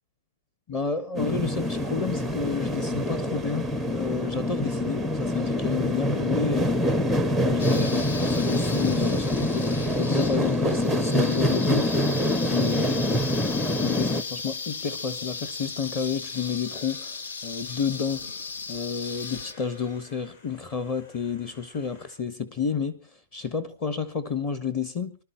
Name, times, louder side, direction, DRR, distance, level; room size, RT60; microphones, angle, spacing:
voice 1, 0.7-6.8 7.4-11.9 12.4-13.2 13.8-18.3 18.7-25.2, left 6 dB, 25° left, 1.4 m, -30 dB
Diesel Locomotive Overpass, 1.2-14.2, left 1 dB, ahead, 0.7 m, -25 dB
sound 1, 7.6-19.5, left 4 dB, 75° left, 1.4 m, -36 dB
sound 2, 15.4-22.2, left 3 dB, 45° left, 7.9 m, -52 dB
25.0 x 12.0 x 4.5 m
hypercardioid pair, 170°, 0 cm